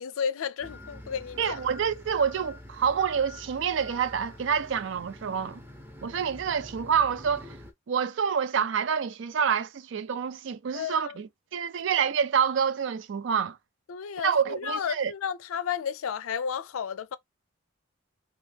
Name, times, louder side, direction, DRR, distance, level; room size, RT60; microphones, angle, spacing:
voice 1, 0.0-1.5 10.7-11.1 13.9-17.2, left 7 dB, 85° left, 0.4 m, -32 dB
sound 1, 0.6-7.7, left 1 dB, 10° right, 0.8 m, -46 dB
voice 2, 1.4-5.6 6.0-7.6 7.9-13.6 14.2-15.1, right 7 dB, 60° right, 0.4 m, -27 dB
2.9 x 2.8 x 3.3 m
head